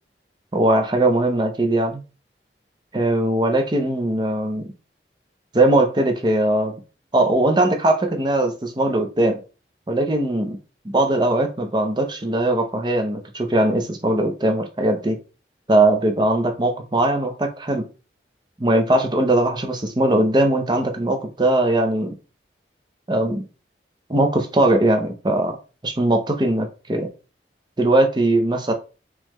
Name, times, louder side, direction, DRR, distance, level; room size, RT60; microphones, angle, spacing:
voice 1, 0.5-2.0 2.9-4.7 5.5-6.7 7.1-9.4 9.9-10.6 10.8-15.2 15.7-17.8 18.6-22.1 23.1-23.4 24.1-25.6 25.8-27.1 27.8-28.7, right 1 dB, 25° right, 0.6 m, -20 dB
3.8 x 3.0 x 3.1 m
head